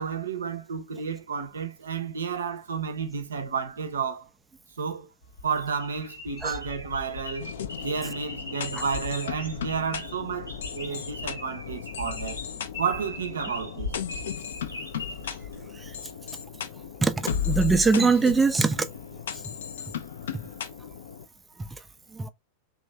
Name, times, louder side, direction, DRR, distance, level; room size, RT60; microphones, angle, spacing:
voice 1, 0.0-4.3 4.8-5.1 5.4-7.5 7.8-12.4 12.8-13.9, right 6 dB, 70° right, 0.6 m, -31 dB
sound 1, 5.2-16.1, left 3 dB, 85° left, 1.2 m, -40 dB
sound 2, 7.4-21.2, left 9 dB, 60° left, 0.4 m, -36 dB
voice 2, 17.5-18.8 22.2-22.3, right 4 dB, 10° right, 0.3 m, -21 dB
3.0 x 2.3 x 3.2 m
figure-of-eight pair, 90°, 0 cm